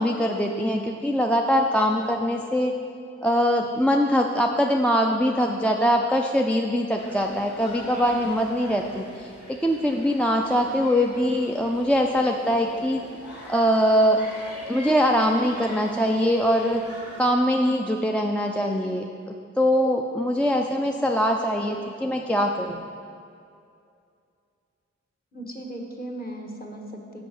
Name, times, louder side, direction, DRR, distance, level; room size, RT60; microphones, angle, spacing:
voice 1, 0.0-2.7 3.2-13.0 13.5-14.2 14.7-16.8 17.2-22.8, equal, 5° left, 2 dB, 0.4 m, -22 dB
sound 1, 7.0-17.3, left 1 dB, 75° left, 1.7 m, -43 dB
voice 2, 25.3-27.2, right 1 dB, 30° left, 0 dB, 1.3 m, -37 dB
6.1 x 5.0 x 6.7 m, 2.4 s
cardioid pair, 45°, 29 cm